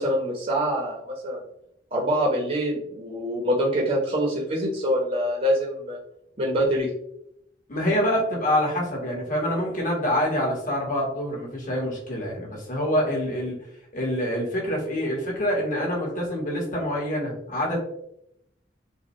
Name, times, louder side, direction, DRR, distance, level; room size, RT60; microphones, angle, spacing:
voice 1, 0.0-1.4 1.9-6.0 6.4-6.9, equal, 40° right, -2 dB, 1.0 m, -25 dB
voice 2, 7.7-13.6 13.9-17.8, equal, 50° left, -2 dB, 1.6 m, -26 dB
6.3 x 2.4 x 3.1 m, 0.76 s
head